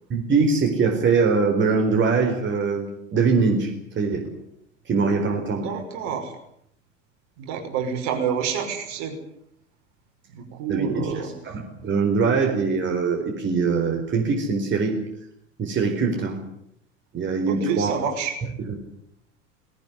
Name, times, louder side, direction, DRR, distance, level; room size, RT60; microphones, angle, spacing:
voice 1, 0.1-4.2 4.9-5.7 10.7-15.0 15.6-16.4 17.1-17.9 18.7-18.8, right 4 dB, 30° right, 2 dB, 4.5 m, -22 dB
voice 2, 5.5-6.4 7.4-9.2 10.3-11.3 17.5-18.4, right 7 dB, 50° right, 4 dB, 5.6 m, -28 dB
19.5 x 18.5 x 9.7 m, 0.74 s
figure-of-eight pair, 75°, 38 cm